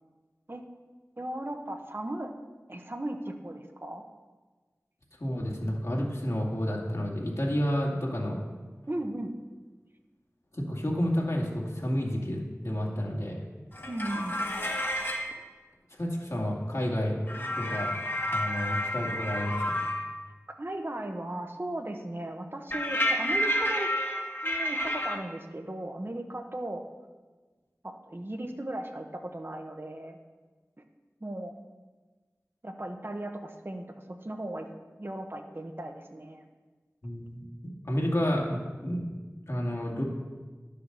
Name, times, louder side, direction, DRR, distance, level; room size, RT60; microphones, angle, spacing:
voice 1, 1.2-2.3 2.7-4.0 8.9-9.3 13.9-14.7 20.6-23.9 24.4-26.8 27.8-30.2 30.8-30.9 31.2-31.5 32.6-33.9 34.2-34.7 35.0-36.4, right 1 dB, 40° right, 4 dB, 1.0 m, -36 dB
voice 2, 5.2-8.4 10.5-13.4 16.0-17.2 17.6-17.9 18.3-19.8 37.0-37.4 37.8-39.0 39.5-40.0, equal, 60° left, -2 dB, 2.3 m, -30 dB
sound 1, 13.7-15.3 17.3-20.1 22.7-25.2, equal, 40° left, 1.6 m, -30 dB
11.0 x 6.8 x 6.8 m, 1.3 s
wide cardioid pair, 45°, 6 cm